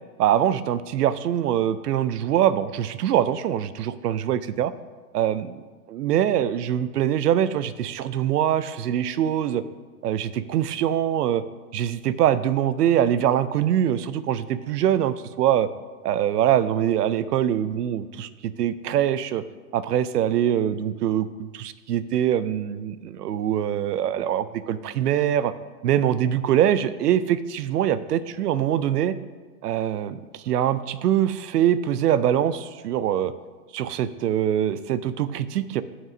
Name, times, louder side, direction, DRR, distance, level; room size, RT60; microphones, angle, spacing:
voice 1, 0.2-4.7 5.1-9.6 10.0-11.4 11.7-15.7 16.0-19.4 19.7-25.5 25.8-29.2 29.6-33.3 33.7-35.8, right 10 dB, 90° right, 15 dB, 0.6 m, -23 dB
6.5 x 4.6 x 6.1 m, 1.4 s
hypercardioid pair, 155°, 46 cm